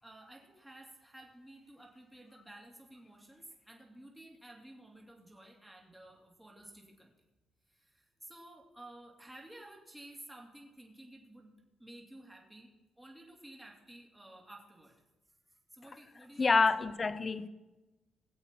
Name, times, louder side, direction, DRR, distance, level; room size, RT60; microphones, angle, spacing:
voice 1, 0.0-7.1 7.7-11.5 11.8-12.7 13.0-15.0 15.5-17.1, right 1 dB, 5° right, 2.8 m, -53 dB
voice 2, 16.4-17.5, left 4 dB, 30° left, 0.7 m, -27 dB
19.5 x 7.9 x 4.5 m
cardioid pair, 90°, 0 cm